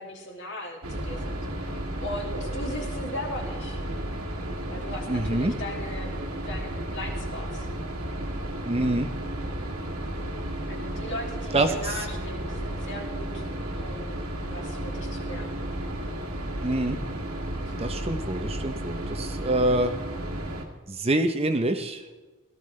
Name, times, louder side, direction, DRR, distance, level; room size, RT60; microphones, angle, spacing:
voice 1, 0.0-3.8 4.7-6.1 6.4-7.7 10.7-13.4 13.7-15.6, left 1 dB, 55° left, 0 dB, 2.6 m, -38 dB
sound 1, 0.8-20.7, right 1 dB, 85° right, 1.8 m, -33 dB
voice 2, 5.1-5.5 8.6-9.1 11.5-11.7 16.6-17.0 17.8-19.9 20.9-22.0, right 1 dB, 25° right, 7 dB, 0.7 m, -25 dB
17.0 x 13.5 x 3.2 m, 1.3 s
head